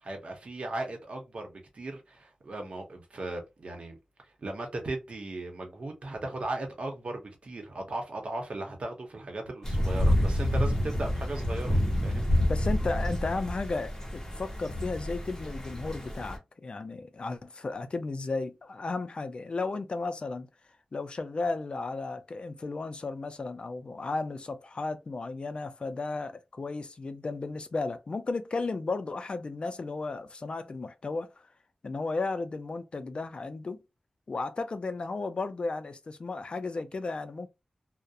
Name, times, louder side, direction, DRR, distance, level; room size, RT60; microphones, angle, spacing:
voice 1, 0.0-4.0 4.2-11.8 12.0-12.3, right 2 dB, 60° right, 0.8 m, -37 dB
sound 1, 9.6-16.4, left 1 dB, 25° left, 0.8 m, -28 dB
voice 2, 12.4-20.5 20.9-31.5 31.8-33.8 34.3-37.5, left 3 dB, 50° left, 0.4 m, -34 dB
2.3 x 2.0 x 2.6 m
wide cardioid pair, 105°, 2 cm